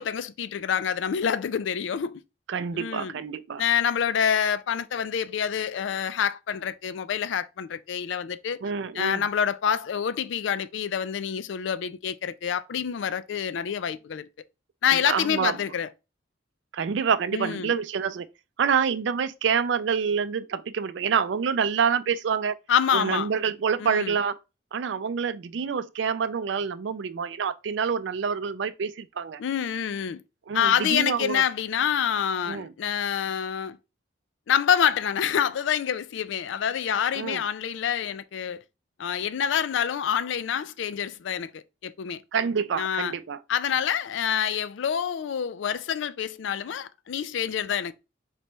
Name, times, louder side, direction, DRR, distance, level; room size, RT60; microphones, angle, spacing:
voice 1, 0.0-2.2 2.7-3.2 3.6-8.6 8.9-14.3 14.8-15.9 17.3-17.8 22.7-23.3 23.8-24.1 29.4-30.2 30.5-33.8 34.5-38.6 39.0-42.2 42.8-43.2 43.5-47.9, left 8 dB, 70° left, 0.4 m, -27 dB
voice 2, 2.5-3.6 8.6-9.2 14.9-15.6 16.7-18.3 18.6-22.5 22.9-24.4 24.7-29.4 30.5-31.4 32.5-32.7 37.2-37.4 42.3-43.4, right 6 dB, 65° right, 0.4 m, -27 dB
4.1 x 3.3 x 3.0 m
head